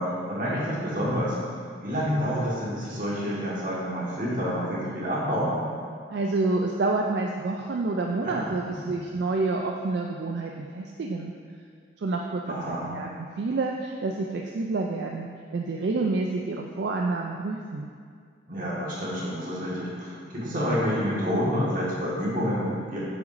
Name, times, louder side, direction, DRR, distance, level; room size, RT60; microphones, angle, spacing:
voice 1, 0.0-1.3 1.8-5.6 8.2-8.8 12.5-12.9 18.5-23.0, equal, 45° right, -7 dB, 1.6 m, -28 dB
voice 2, 6.1-11.3 12.0-13.1 13.4-17.9, right 3 dB, 65° right, 1 dB, 0.4 m, -28 dB
7.9 x 5.7 x 2.6 m, 2.1 s
head